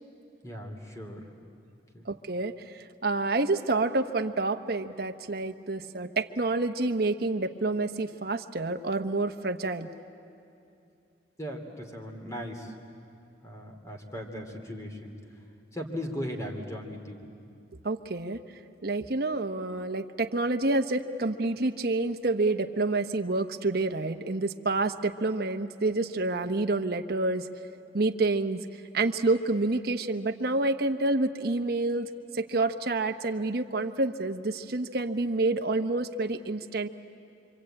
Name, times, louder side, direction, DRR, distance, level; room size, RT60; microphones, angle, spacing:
voice 1, 0.4-1.3 1.9-2.0 11.4-12.7 13.4-15.2 15.7-17.3, equal, 15° left, 3 dB, 2.7 m, -38 dB
voice 2, 2.1-2.5 3.0-9.9 17.8-18.4 18.8-27.5 27.9-28.6 28.9-36.9, right 2 dB, 55° right, 6 dB, 1.0 m, -28 dB
26.5 x 25.5 x 8.8 m, 2.7 s
head